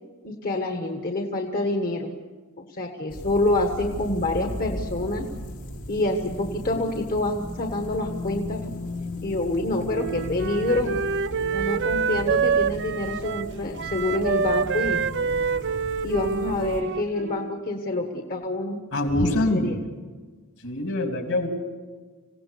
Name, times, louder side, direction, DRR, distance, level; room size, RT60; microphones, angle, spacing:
voice 1, 0.2-2.2 2.6-5.3 5.9-8.7 9.2-11.0 11.5-15.0 16.0-18.8 19.5-19.9, left 2 dB, 40° left, 3 dB, 1.4 m, -27 dB
sound 1, 3.1-16.8, left 1 dB, 90° left, 4.0 m, -36 dB
Wind instrument woodwind instrument, 9.9-17.6, right 6 dB, 55° right, 0.5 m, -27 dB
voice 2, 18.9-19.8 20.6-21.5, left 1 dB, 65° left, 3 dB, 3.3 m, -24 dB
26.5 x 17.0 x 6.8 m, 1.4 s
head